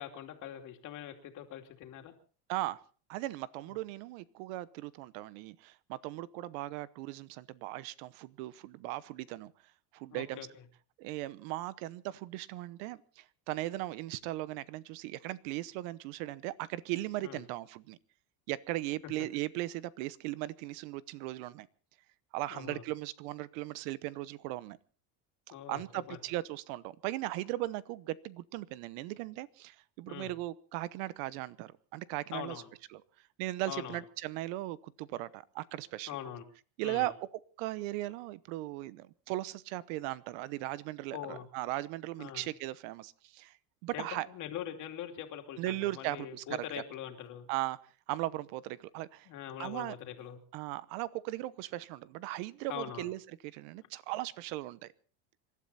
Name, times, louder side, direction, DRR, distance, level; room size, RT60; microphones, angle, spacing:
voice 1, 0.0-2.1 10.1-10.5 17.2-17.4 22.5-22.8 25.5-26.2 30.1-30.3 32.3-32.7 33.7-34.0 36.1-36.4 36.8-37.1 41.1-41.5 42.2-42.5 43.9-47.5 49.3-50.4 52.7-53.1, left 10 dB, 50° left, 5 dB, 2.8 m, -42 dB
voice 2, 2.5-2.8 3.1-9.5 9.9-10.4 11.0-18.0 18.5-21.7 22.3-24.8 25.7-32.5 32.9-33.0 33.4-36.2 36.8-37.3 37.6-43.5 43.8-44.3 45.6-46.4 47.5-47.8 48.1-49.3 49.6-50.0 50.5-54.9, right 17 dB, 80° right, 18 dB, 1.0 m, -38 dB
27.0 x 12.0 x 4.2 m, 0.40 s
cardioid pair, 140°, 38 cm